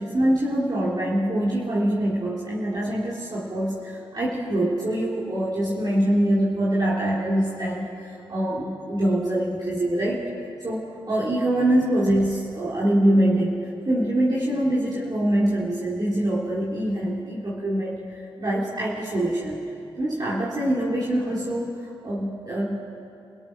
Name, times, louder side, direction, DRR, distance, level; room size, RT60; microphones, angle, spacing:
voice 1, 0.0-10.2 10.6-19.6 20.0-22.8, right 1 dB, 45° right, -6 dB, 3.8 m, -24 dB
29.5 x 17.0 x 6.2 m, 2.6 s
supercardioid pair, 45°, 10 cm